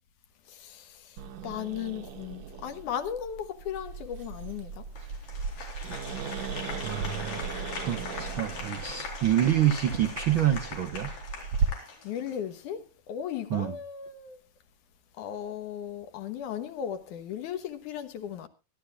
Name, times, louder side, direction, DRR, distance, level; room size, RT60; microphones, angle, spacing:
voice 1, 0.6-0.9 1.4-4.8 12.0-14.4 15.2-18.5, left 9 dB, 70° left, 2.5 m, -36 dB
Growling, 1.2-11.7, right 5 dB, 65° right, 2.1 m, -36 dB
Applause, 5.0-12.5, left 4 dB, 90° left, 5.8 m, -41 dB
voice 2, 6.8-7.4 7.7-11.1 13.5-13.8, right 11 dB, 80° right, 1.1 m, -27 dB
24.0 x 11.5 x 2.4 m
omnidirectional pair, 3.8 m